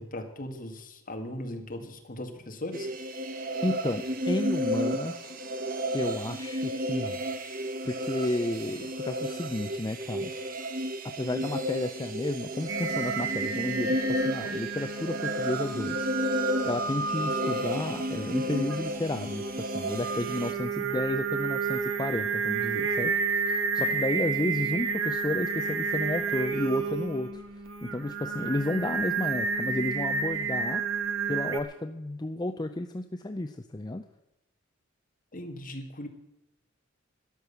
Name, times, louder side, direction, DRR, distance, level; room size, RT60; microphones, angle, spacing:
voice 1, 0.0-2.9 35.3-36.1, left 1 dB, 45° left, 3 dB, 2.1 m, -38 dB
sound 1, 2.7-20.5, equal, 45° right, 1.1 m, -32 dB
voice 2, 3.6-5.3 5.9-7.2 7.8-10.3 11.0-16.1 16.6-27.4 27.8-30.8 31.3-34.0, left 2 dB, 20° left, 7 dB, 0.6 m, -32 dB
Singing, 12.7-31.6, right 5 dB, 75° right, 1.5 m, -31 dB
13.0 x 11.0 x 7.1 m, 0.87 s
head